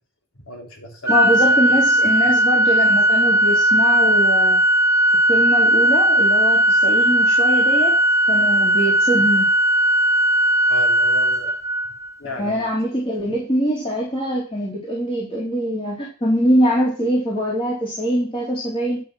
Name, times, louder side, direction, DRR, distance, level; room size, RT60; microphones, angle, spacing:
voice 1, 0.4-1.2 1.5-1.8 10.7-11.5 12.2-12.7, left 1 dB, 85° left, 1 dB, 3.6 m, -35 dB
voice 2, 1.1-4.6 5.3-7.9 8.3-9.5 12.4-19.0, equal, 25° left, -4 dB, 3.2 m, -23 dB
Organ, 1.1-12.1, right 1 dB, 15° right, 0.7 m, -17 dB
10.5 x 6.2 x 6.1 m, 0.39 s
head